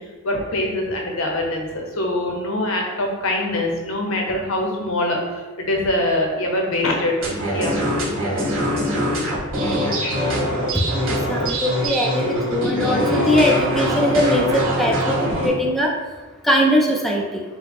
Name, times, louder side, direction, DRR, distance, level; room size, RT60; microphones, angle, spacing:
voice 1, 0.2-7.1 7.5-7.8, left 1 dB, 75° left, 0 dB, 0.8 m, -23 dB
sound 1, 7.2-15.5, equal, 75° right, 1.5 m, -22 dB
voice 2, 10.9-15.9 16.4-17.4, equal, ahead, -2 dB, 0.4 m, -21 dB
5.3 x 2.0 x 3.4 m, 1.3 s
head